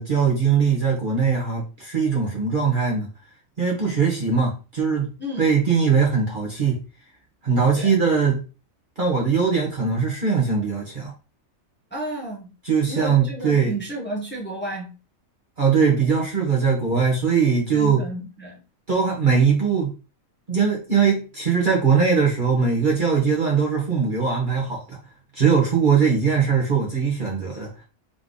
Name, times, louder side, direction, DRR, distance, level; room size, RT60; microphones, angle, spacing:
voice 1, 0.0-3.1 3.6-5.1 5.4-6.8 7.4-8.4 9.0-11.1 12.6-13.7 15.6-18.0 18.9-19.9 20.5-25.0 25.3-27.7, right 6 dB, 40° right, 1.3 m, -21 dB
voice 2, 11.9-12.5 12.9-15.0 17.7-18.6, right 1 dB, 10° left, 1.2 m, -32 dB
3.8 x 3.3 x 3.9 m
omnidirectional pair, 1.5 m